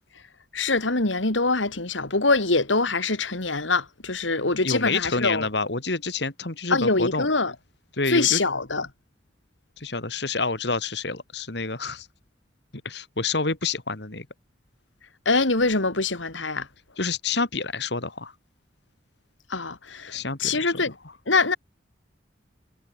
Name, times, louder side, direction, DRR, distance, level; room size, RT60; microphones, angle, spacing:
voice 1, 0.5-5.5 6.7-7.5 8.1-8.9 15.2-16.7 19.5-20.9 21.3-21.6, left 3 dB, 90° left, 3.3 m, -24 dB
voice 2, 4.6-7.3 7.9-8.4 9.8-12.1 12.8-14.3 17.0-18.3 20.1-20.8, left 3 dB, 60° left, 2.4 m, -28 dB
head